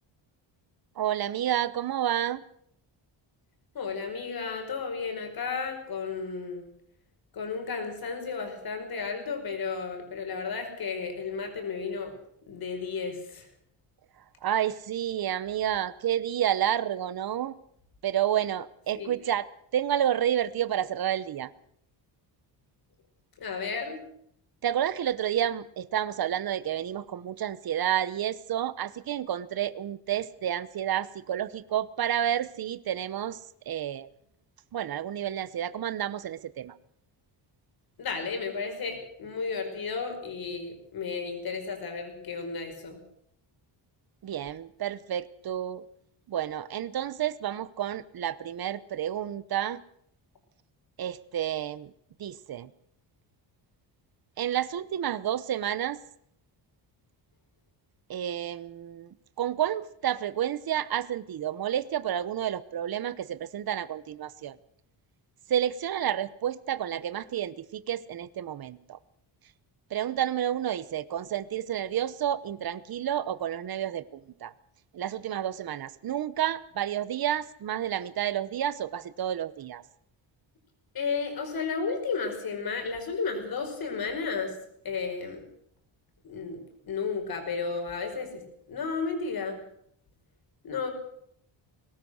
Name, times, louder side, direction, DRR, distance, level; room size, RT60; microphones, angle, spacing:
voice 1, 1.0-2.4 14.4-17.5 18.0-19.5 19.7-21.5 24.6-33.4 33.7-34.1 34.7-36.8 44.2-45.8 46.3-49.8 51.0-51.9 52.2-52.7 54.4-56.0 58.1-64.6 65.5-69.0 69.9-74.5 74.9-79.8, right 10 dB, 50° right, 17 dB, 1.0 m, -30 dB
voice 2, 3.7-6.7 7.3-12.1 12.5-13.5 18.9-19.1 23.4-24.0 38.0-43.0 80.9-84.6 84.8-85.5 86.2-88.4 88.7-89.6 90.6-90.9, left 5 dB, 50° left, 5 dB, 5.3 m, -33 dB
22.0 x 19.0 x 6.4 m, 0.69 s
wide cardioid pair, 170°, 47 cm